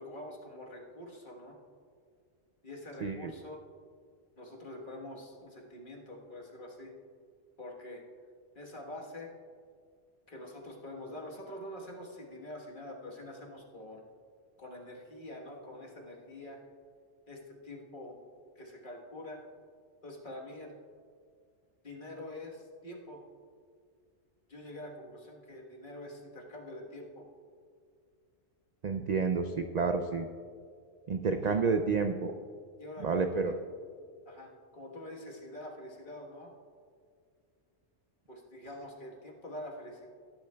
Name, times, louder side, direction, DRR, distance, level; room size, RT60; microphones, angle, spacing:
voice 1, 0.0-1.6 2.6-3.6 4.4-6.9 7.6-8.0 8.5-9.3 10.3-14.0 14.6-16.6 17.3-18.2 18.5-19.4 20.0-20.7 21.8-23.2 24.5-27.2 31.4-31.6 32.8-33.6 34.2-36.5 38.3-40.1, left 1 dB, 45° left, -1 dB, 1.5 m, -45 dB
voice 2, 3.0-3.3 28.8-30.3 31.1-32.3 33.0-33.5, right 4 dB, 55° right, 6 dB, 0.4 m, -29 dB
17.0 x 10.0 x 2.3 m, 2.1 s
omnidirectional pair, 1.2 m